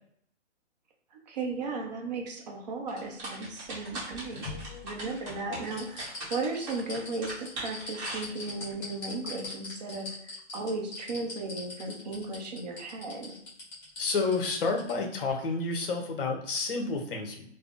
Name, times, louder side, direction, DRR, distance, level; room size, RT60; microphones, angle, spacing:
voice 1, 1.1-4.4 4.8-13.4, right 3 dB, 35° right, 1 dB, 0.6 m, -36 dB
sound 1, 2.9-8.7, right 2 dB, 20° right, 0.9 m, -40 dB
sound 2, 3.9-5.2 5.7-14.9 15.3-15.4, left 3 dB, 20° left, 0.8 m, -41 dB
voice 2, 14.0-17.5, left 3 dB, 50° left, 2 dB, 0.8 m, -30 dB
3.4 x 2.0 x 2.5 m, 0.69 s
hypercardioid pair, 140°, 36 cm